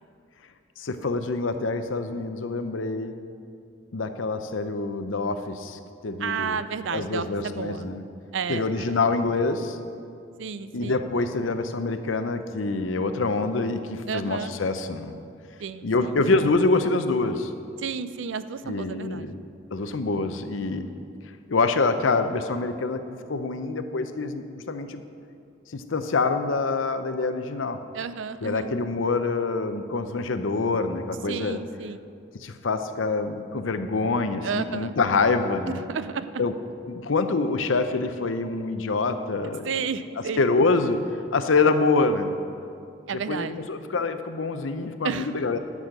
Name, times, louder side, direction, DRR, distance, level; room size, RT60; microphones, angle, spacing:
voice 1, 0.8-3.1 3.9-6.6 6.9-8.0 8.5-9.8 10.7-15.1 15.8-17.5 18.6-19.4 19.7-20.9 21.5-23.0 23.3-25.0 25.7-27.8 28.4-31.6 32.4-35.8 36.4-36.5 36.9-39.7 40.4-41.0 41.3-42.4 43.3-45.6, left 3 dB, 90° left, 9 dB, 0.7 m, -26 dB
voice 2, 6.2-7.9 8.3-9.0 10.4-11.0 14.1-14.5 15.6-16.1 17.8-19.4 27.9-28.7 31.3-32.0 34.4-35.0 35.7-36.4 39.6-40.5 43.1-43.6 45.0-45.3, right 6 dB, 75° right, 13 dB, 0.4 m, -32 dB
12.0 x 6.3 x 6.6 m, 2.4 s
head